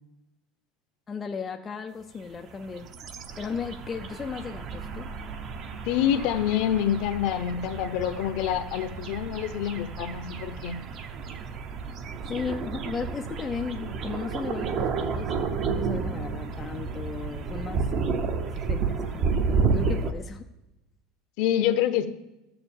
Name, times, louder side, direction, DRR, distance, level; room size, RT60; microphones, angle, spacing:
voice 1, 1.1-3.0 3.4-5.1 12.2-15.3 15.7-19.3 19.7-20.5, left 5 dB, 15° left, 4 dB, 0.5 m, -35 dB
sound 1, 2.4-20.1, right 5 dB, 30° right, 0.8 m, -31 dB
voice 2, 5.9-10.8 21.4-22.1, left 10 dB, 50° left, 11 dB, 0.8 m, -26 dB
13.5 x 7.0 x 7.1 m, 0.97 s
cardioid pair, 175°, 0 cm